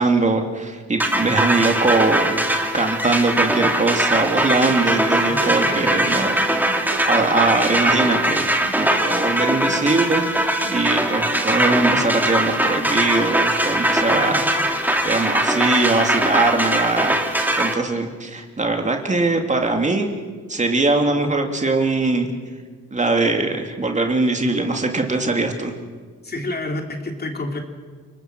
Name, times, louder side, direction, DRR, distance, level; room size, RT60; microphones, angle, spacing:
voice 1, 0.0-2.4 2.7-6.4 7.0-8.5 8.8-10.3 10.7-17.2 17.6-20.1 20.5-22.3 22.9-25.7, right 3 dB, 25° right, 3 dB, 2.6 m, -21 dB
sound 1, 1.0-17.7, right 1 dB, 5° right, 2.5 m, -21 dB
sound 2, 3.4-6.3 6.6-10.3 10.6-11.3, right 4 dB, 85° right, 3.5 m, -37 dB
voice 2, 5.2-6.0 6.9-7.1 14.1-14.7 26.2-27.6, left 2 dB, 30° left, 3 dB, 3.3 m, -30 dB
29.5 x 19.0 x 6.2 m, 1.5 s
cardioid pair, 90°, 30 cm